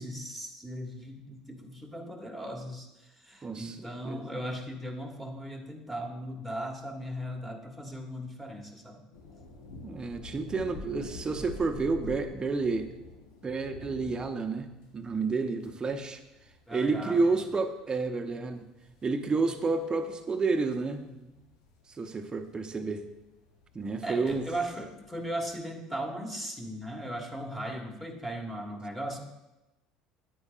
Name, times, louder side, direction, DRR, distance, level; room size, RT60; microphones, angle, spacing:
voice 1, 0.0-2.9 3.2-9.0 10.3-11.7 16.7-17.4 18.3-18.5 19.4-20.1 20.9-21.4 24.0-29.2, right 1 dB, 5° left, 2 dB, 1.5 m, -38 dB
voice 2, 3.4-4.2 9.8-12.9 13.4-16.2 16.7-18.6 19.0-21.0 22.0-23.0 23.7-24.5, right 4 dB, 25° right, 6 dB, 0.9 m, -30 dB
sound 1, 9.1-25.5, left 3 dB, 80° left, 1.1 m, -48 dB
9.6 x 8.5 x 2.5 m, 0.98 s
hypercardioid pair, 70°, 3 cm